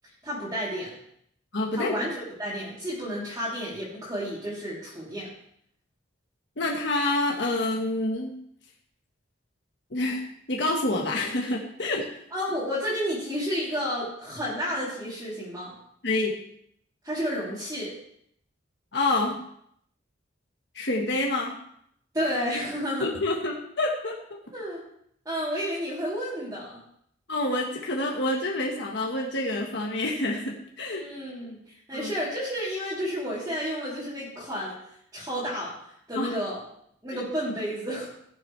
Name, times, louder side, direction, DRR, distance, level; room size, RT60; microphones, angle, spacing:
voice 1, 0.2-0.9 1.7-2.1 2.4-5.3 12.3-15.7 17.0-17.9 22.1-23.1 24.5-24.8 25.3-26.8 30.9-31.6 31.9-34.8 35.1-35.7 36.1-36.6 37.0-38.1, equal, 20° right, -11 dB, 3.5 m, -31 dB
voice 2, 1.5-2.0 6.6-8.3 9.9-10.2 10.5-12.1 16.0-16.3 18.9-19.4 20.7-21.5 23.0-24.2 27.3-31.1 31.9-32.1 36.1-36.4 37.1-37.2, left 2 dB, 65° left, -1 dB, 1.5 m, -27 dB
17.5 x 7.5 x 3.3 m, 0.70 s
head